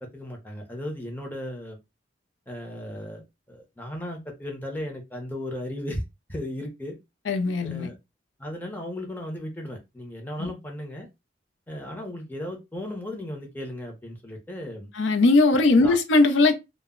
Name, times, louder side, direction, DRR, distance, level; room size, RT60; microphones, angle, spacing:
voice 1, 0.0-1.8 2.5-3.2 3.5-6.0 6.3-7.0 7.6-8.0 8.4-11.1 11.7-14.9 15.8-16.0, left 1 dB, 10° left, 0.6 m, -35 dB
voice 2, 7.3-7.9 10.4-10.5 15.0-16.5, left 3 dB, 85° left, 0.5 m, -19 dB
2.1 x 2.0 x 3.5 m
head